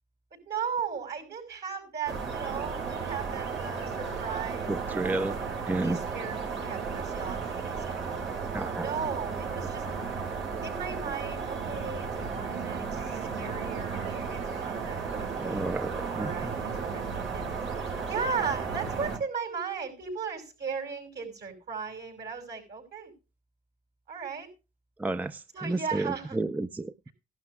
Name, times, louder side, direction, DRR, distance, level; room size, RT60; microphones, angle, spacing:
voice 1, 0.3-4.7 5.1-8.3 8.8-9.9 10.3-17.4 18.1-23.1 24.1-24.5 25.5-26.4, right 6 dB, 55° right, 3 dB, 5.7 m, -37 dB
sound 1, 2.1-19.2, right 5 dB, 75° right, 4.9 m, -34 dB
voice 2, 4.7-5.4 5.7-6.0 8.5-8.9 15.1-16.3 25.0-26.9, right 2 dB, 10° right, 12 dB, 0.5 m, -31 dB
18.0 x 12.0 x 2.3 m, 0.29 s
cardioid pair, 90°, 20 cm